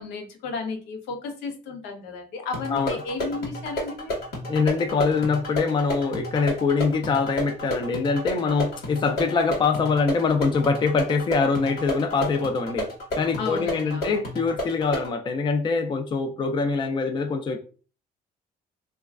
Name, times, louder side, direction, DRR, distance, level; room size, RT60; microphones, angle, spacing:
voice 1, 0.0-4.1 13.4-14.2, left 4 dB, 85° left, 0.7 m, -33 dB
sound 1, 2.5-15.1, equal, 65° left, 1.3 m, -32 dB
voice 2, 4.5-12.9 13.2-17.6, left 4 dB, 30° left, 0.4 m, -24 dB
3.0 x 2.3 x 2.3 m
cardioid pair, 110°, 17 cm